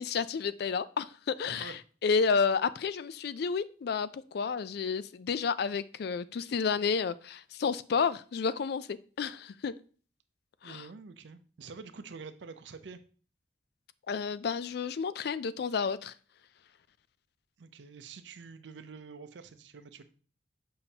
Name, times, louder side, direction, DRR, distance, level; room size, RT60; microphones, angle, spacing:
voice 1, 0.0-1.7 2.0-9.7 10.6-10.9 14.1-16.1, left 5 dB, 60° left, 0.4 m, -31 dB
voice 2, 1.4-1.8 10.6-13.0 17.6-20.0, right 4 dB, 85° right, 0.5 m, -47 dB
7.0 x 5.5 x 2.8 m
head